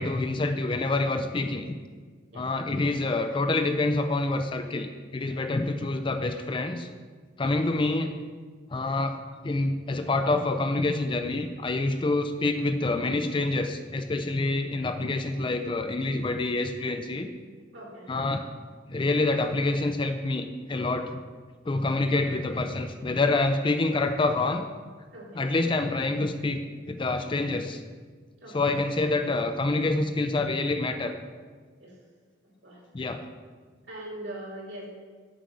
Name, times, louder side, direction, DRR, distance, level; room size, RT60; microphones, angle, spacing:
voice 1, 0.0-1.7 2.3-6.9 7.4-8.1 8.7-9.2 9.4-17.3 18.1-18.4 18.9-21.2 21.7-24.7 25.3-27.8 28.5-31.1 32.9-33.2, left 2 dB, 25° left, 7 dB, 0.4 m, -27 dB
voice 2, 2.3-2.8 7.4-7.5 17.7-18.0 21.9-22.0 25.1-25.4 28.4-28.7 31.8-31.9 32.6-32.8 33.9-34.9, right 1 dB, 65° right, -3 dB, 2.6 m, -41 dB
7.6 x 4.9 x 7.1 m, 1.5 s
head